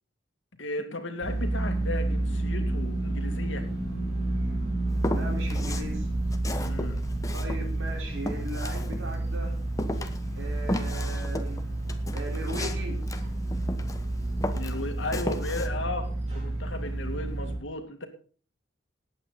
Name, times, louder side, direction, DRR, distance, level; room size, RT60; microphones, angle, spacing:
voice 1, 0.6-3.7 6.6-7.0 14.5-18.1, left 2 dB, 75° left, 6 dB, 2.4 m, -35 dB
sound 1, 1.2-17.6, right 2 dB, 35° right, 7.9 m, -30 dB
Walk footsteps, 5.0-5.9 6.3-9.4 9.8-14.1 14.4-15.7, left 1 dB, 15° left, 1.2 m, -34 dB
voice 2, 5.0-6.1 7.3-9.6 10.4-11.6 12.1-13.0, right 1 dB, 85° right, 2 dB, 4.6 m, -38 dB
18.5 x 8.9 x 4.2 m, 0.41 s
head